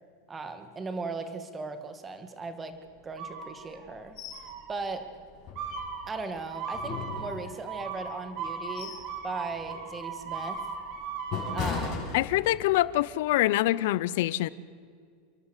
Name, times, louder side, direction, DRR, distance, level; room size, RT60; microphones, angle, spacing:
voice 1, 0.3-2.8 3.0-4.2 4.7-5.1 6.1-8.9 9.2-10.6 11.5-12.2, right 3 dB, 20° right, 8 dB, 2.1 m, -37 dB
sound 1, 3.2-3.9 4.3-4.9 5.5-11.9, right 5 dB, 50° right, 4.5 m, -38 dB
sound 2, 4.2-4.5 4.8-4.9 5.4-6.2 6.7-7.8 8.3-9.1 9.5-9.8 10.3-12.8 13.2-13.4, left 6 dB, 45° left, 6.6 m, -37 dB
voice 2, 12.1-14.5, left 16 dB, 70° left, 19 dB, 0.7 m, -25 dB
29.5 x 11.0 x 8.3 m, 2.1 s
supercardioid pair, 130°, 0 cm